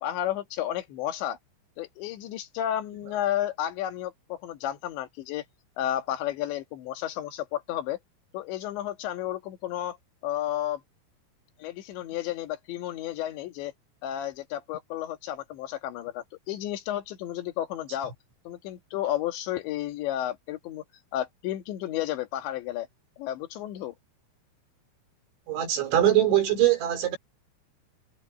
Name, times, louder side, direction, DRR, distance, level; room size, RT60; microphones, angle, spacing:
voice 1, 0.0-1.4 1.8-5.5 5.8-8.0 8.3-10.0 10.2-10.8 11.6-13.7 14.0-18.1 18.5-20.8 21.1-22.9 23.2-24.0, left 12 dB, 75° left, 4.0 m, -32 dB
voice 2, 25.5-27.2, right 12 dB, 80° right, 6.4 m, -22 dB
omnidirectional pair, 5.2 m